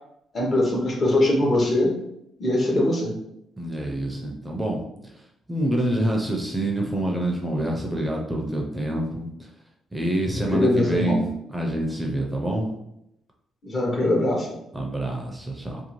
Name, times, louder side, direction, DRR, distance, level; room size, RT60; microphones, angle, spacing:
voice 1, 0.3-1.9 2.4-3.1 10.4-11.2 13.6-14.6, left 1 dB, 40° left, -1 dB, 0.8 m, -22 dB
voice 2, 3.6-5.2 5.5-9.5 9.9-11.2 11.5-12.7 14.7-15.8, right 1 dB, 10° right, 0 dB, 0.5 m, -27 dB
2.6 x 2.3 x 2.9 m, 0.79 s
cardioid pair, 90°, 0 cm